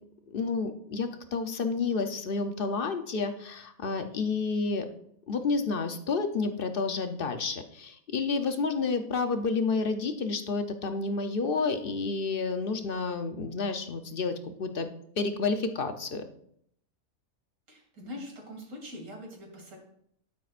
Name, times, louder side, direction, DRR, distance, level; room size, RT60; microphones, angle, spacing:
voice 1, 0.3-4.9 5.3-14.9 15.2-16.2, left 4 dB, 50° left, 7 dB, 0.8 m, -30 dB
voice 2, 17.7-19.8, left 1 dB, 85° right, 0 dB, 3.1 m, -43 dB
12.0 x 9.4 x 2.5 m, 0.68 s
omnidirectional pair, 1.5 m